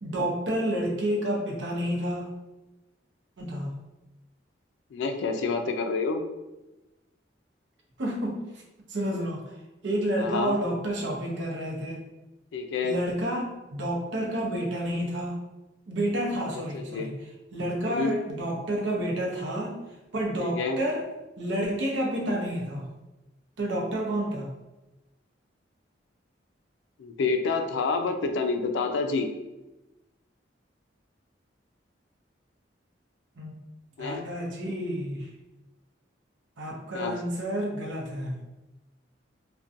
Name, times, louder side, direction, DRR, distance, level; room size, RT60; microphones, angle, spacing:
voice 1, 0.0-2.3 3.4-3.7 8.0-8.6 8.9-9.6 9.8-12.0 12.8-15.4 15.9-17.1 17.5-19.8 20.1-21.1 21.4-22.9 23.6-24.5 33.4-33.6 34.0-35.3 36.6-38.4, right 1 dB, 80° right, -1 dB, 0.6 m, -30 dB
voice 2, 4.9-6.2 10.2-10.6 12.5-13.0 16.5-17.1 17.8-18.1 20.4-20.8 27.0-29.3 34.0-34.2 36.9-37.1, left 4 dB, 75° left, 6 dB, 0.3 m, -28 dB
2.4 x 2.2 x 2.5 m, 1.0 s
head